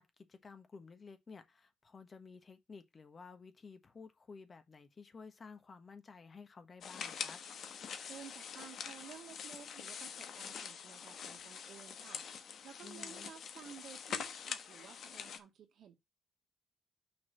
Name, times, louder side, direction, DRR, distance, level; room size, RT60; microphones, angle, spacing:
voice 1, 0.0-7.4 12.8-13.3, left 5 dB, 40° left, 1.3 m, -54 dB
sound 1, 6.8-15.4, left 7 dB, 65° left, 1.1 m, -45 dB
voice 2, 8.1-12.2 12.6-15.9, right 8 dB, 70° right, 2.0 m, -54 dB
6.0 x 4.1 x 6.1 m
cardioid pair, 90°, 0 cm